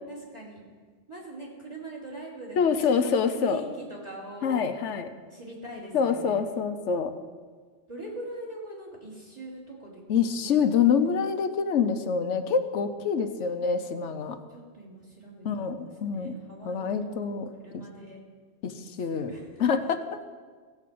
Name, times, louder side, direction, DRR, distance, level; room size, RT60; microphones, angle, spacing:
voice 1, 0.1-0.6 1.1-4.7 5.3-6.4 7.9-10.0 10.4-11.1 14.5-18.2 19.1-19.6, right 1 dB, 25° right, -4 dB, 3.2 m, -42 dB
voice 2, 2.6-3.6 4.4-5.1 5.9-7.1 10.1-14.4 15.4-16.3 16.6-17.5 17.7-17.8 18.6-19.3 19.6-20.2, left 6 dB, 85° left, 8 dB, 1.1 m, -26 dB
16.0 x 5.5 x 7.6 m, 1.5 s
omnidirectional pair, 1.2 m